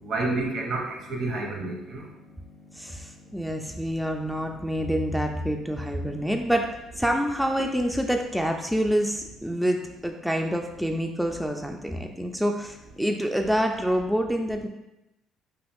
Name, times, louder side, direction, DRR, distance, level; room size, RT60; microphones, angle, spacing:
voice 1, 0.0-2.1, right 2 dB, 65° right, 0 dB, 0.8 m, -29 dB
voice 2, 2.7-14.7, equal, 5° right, 3 dB, 0.3 m, -27 dB
3.0 x 2.3 x 3.5 m, 0.94 s
supercardioid pair, 70°, 0 cm